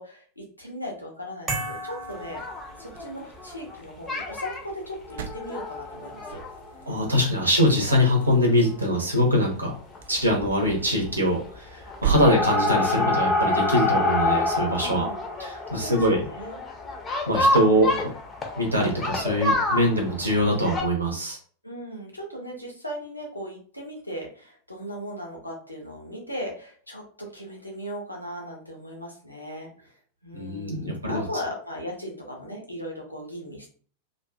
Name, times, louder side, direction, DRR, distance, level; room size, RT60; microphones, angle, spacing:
voice 1, 0.0-2.4 2.8-6.4 14.8-15.3 15.7-16.6 17.6-17.8 21.6-30.0 30.2-33.7, equal, 85° left, -1 dB, 0.7 m, -37 dB
sound 1, 1.5-3.4, right 2 dB, 15° right, 0.8 m, -35 dB
sound 2, 1.9-13.1, right 9 dB, 60° right, 0.3 m, -38 dB
sound 3, 2.2-3.7 4.1-4.6 5.1-7.2 7.6-7.7 7.9-8.0 8.3-8.4 9.8-10.0 10.2-10.7 11.0-11.5 11.9-20.8, left 2 dB, 20° left, 0.6 m, -27 dB
voice 2, 6.9-9.7 10.1-15.1 15.4-16.2 17.3-17.9 18.6-21.4 30.3-31.2, equal, 80° right, 0 dB, 0.8 m, -23 dB
2.5 x 2.3 x 2.2 m, 0.43 s
figure-of-eight pair, 90°, 0 cm